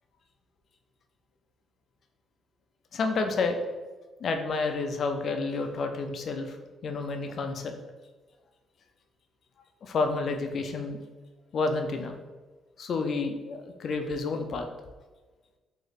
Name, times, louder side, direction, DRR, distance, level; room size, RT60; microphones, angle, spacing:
voice 1, 2.9-3.6 4.2-6.6 6.8-7.7 9.8-11.0 11.5-12.1 12.8-14.7, left 3 dB, 55° left, 6 dB, 0.5 m, -30 dB
3.1 x 2.6 x 4.0 m, 1.3 s
cardioid pair, 90°, 0 cm